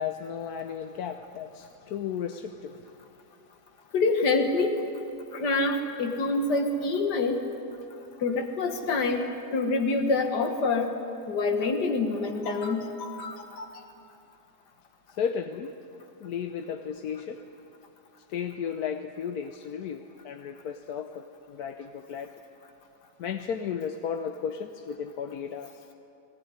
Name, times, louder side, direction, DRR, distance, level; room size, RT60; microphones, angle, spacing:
voice 1, 0.0-2.8 15.2-15.7 16.2-17.4 18.3-22.4 23.2-25.7, left 7 dB, 70° left, 6 dB, 1.3 m, -34 dB
voice 2, 3.9-4.8 5.3-7.4 8.2-10.9 11.3-13.7, left 3 dB, 85° left, 5 dB, 2.1 m, -26 dB
21.5 x 17.5 x 9.7 m, 2.7 s
omnidirectional pair, 1.8 m